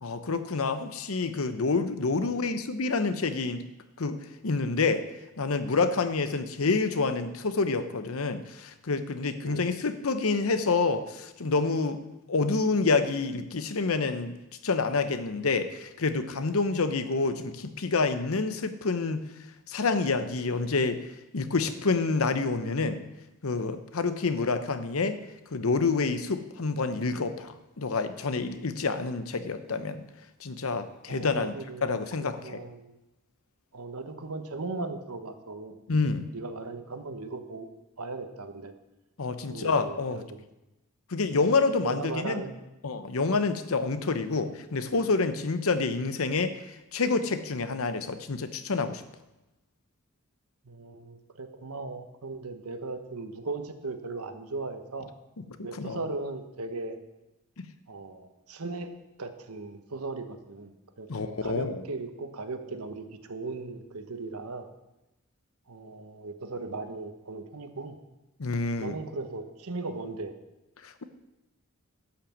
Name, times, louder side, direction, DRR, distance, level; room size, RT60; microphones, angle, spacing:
voice 1, 0.0-3.6 4.0-4.2 4.4-5.0 5.4-12.0 12.3-14.3 14.6-19.3 19.7-21.1 21.3-23.0 23.4-25.2 25.5-30.0 30.4-31.5 31.8-32.6 35.9-36.2 39.2-40.2 41.1-42.4 42.8-46.5 46.9-49.0 55.8-56.0 57.6-57.7 61.1-61.8 68.4-68.9 70.8-71.0, left 4 dB, 75° left, 10 dB, 0.8 m, -28 dB
voice 2, 31.1-32.0 32.4-32.9 33.7-35.8 36.3-37.7 38.0-38.7 39.4-40.4 41.8-42.6 50.6-55.1 55.6-57.0 57.9-58.9 59.2-64.7 65.7-68.0 68.8-70.3, right 3 dB, 85° right, 8 dB, 1.1 m, -37 dB
11.5 x 5.9 x 7.3 m, 0.97 s
head